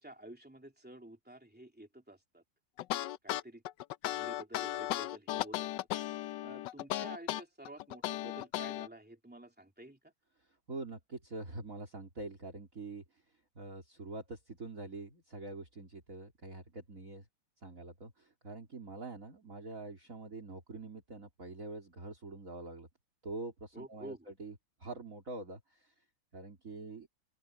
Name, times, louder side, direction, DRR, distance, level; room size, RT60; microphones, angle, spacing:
voice 1, 0.0-2.4 3.2-3.6 4.0-5.7 6.4-10.1 23.7-24.3, right 1 dB, 5° right, 3.0 m, -50 dB
sound 1, 2.8-8.9, left 14 dB, 70° left, 1.1 m, -36 dB
voice 2, 10.7-13.0 13.6-17.3 17.6-22.9 23.2-25.9 26.3-27.1, right 3 dB, 35° right, 3.7 m, -45 dB
open air
omnidirectional pair, 2.4 m